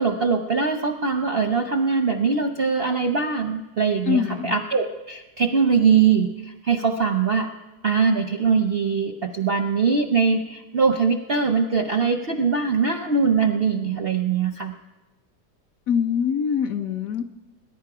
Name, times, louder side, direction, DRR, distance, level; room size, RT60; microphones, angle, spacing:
voice 1, 0.0-6.3 6.6-7.5 7.8-14.7, right 5 dB, 55° right, 6 dB, 0.6 m, -22 dB
voice 2, 4.1-4.5 15.9-17.3, left 7 dB, 65° left, 8 dB, 0.9 m, -23 dB
20.5 x 10.0 x 4.9 m, 1.1 s
omnidirectional pair, 1.9 m